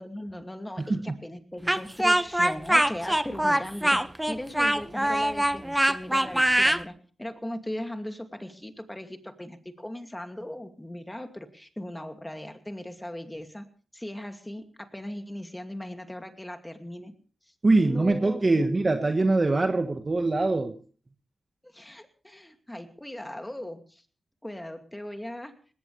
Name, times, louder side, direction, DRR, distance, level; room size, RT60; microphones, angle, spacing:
voice 1, 0.0-4.0 4.3-13.6 13.9-17.1 17.7-18.7 21.6-24.0 24.4-25.5, left 1 dB, 10° left, 6 dB, 2.5 m, -38 dB
voice 2, 0.8-1.1 17.6-20.7, right 2 dB, 35° right, 6 dB, 1.5 m, -23 dB
Speech, 1.7-6.8, right 1 dB, 10° right, 0.9 m, -23 dB
19.5 x 18.0 x 3.4 m, 0.40 s
cardioid pair, 70°, 0 cm